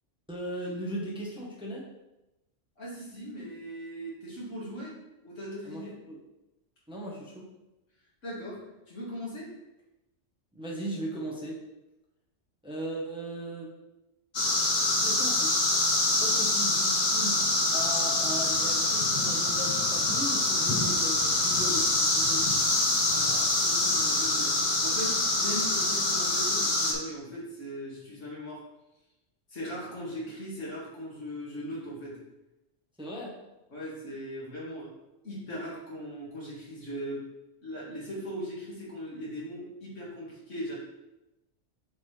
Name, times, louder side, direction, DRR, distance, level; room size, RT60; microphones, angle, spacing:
voice 1, 0.3-1.9 5.6-6.2 6.9-7.5 10.5-11.6 12.6-13.7 15.0-15.5 16.2-17.4 17.7-22.4 33.0-33.4, right 1 dB, 5° right, -4 dB, 1.1 m, -37 dB
voice 2, 2.8-5.9 8.2-8.6 8.9-9.5 23.1-24.5 24.8-28.6 29.5-32.2 33.7-34.9 35.2-37.2 37.6-40.7, equal, 80° left, -6 dB, 2.3 m, -39 dB
sound 1, 14.3-26.9, left 2 dB, 40° left, 1.0 m, -25 dB
7.4 x 4.1 x 3.3 m, 0.95 s
omnidirectional pair, 1.3 m